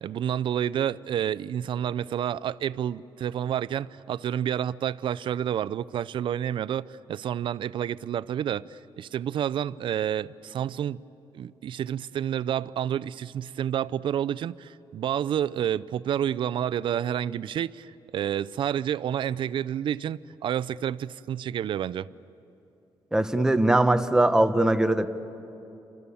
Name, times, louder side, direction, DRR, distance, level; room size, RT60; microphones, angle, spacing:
voice 1, 0.0-11.0 11.3-22.1, right 10 dB, 65° right, 17 dB, 0.5 m, -29 dB
voice 2, 23.1-25.1, right 1 dB, 5° right, 8 dB, 1.0 m, -21 dB
30.0 x 26.0 x 7.1 m, 2.9 s
cardioid pair, 125°, 9 cm